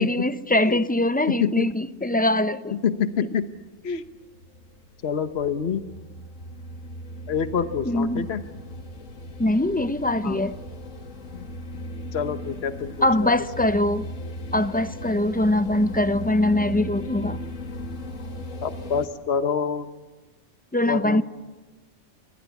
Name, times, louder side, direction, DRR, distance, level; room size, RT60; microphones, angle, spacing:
voice 1, 0.0-2.8 7.8-8.3 9.4-10.6 13.0-14.1 14.5-17.4 20.7-21.2, left 1 dB, 10° left, 0.5 m, -22 dB
voice 2, 1.3-1.7 2.7-3.5 3.8-4.0 5.0-5.8 7.3-8.4 10.2-10.4 11.3-11.4 12.1-13.4 18.6-19.9 20.8-21.2, left 7 dB, 55° left, 1.4 m, -26 dB
sound 1, 3.3-19.1, left 1 dB, 85° left, 2.3 m, -37 dB
25.5 x 23.5 x 8.3 m
omnidirectional pair, 1.3 m